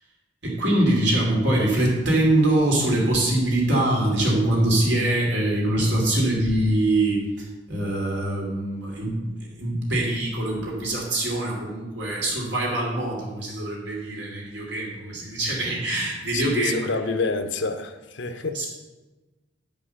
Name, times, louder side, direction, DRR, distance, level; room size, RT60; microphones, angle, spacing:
voice 1, 0.4-16.9 18.5-18.7, right 1 dB, 70° right, -3 dB, 2.9 m, -23 dB
voice 2, 16.3-18.6, left 4 dB, 90° left, 8 dB, 0.8 m, -28 dB
8.7 x 5.5 x 6.5 m, 1.2 s
head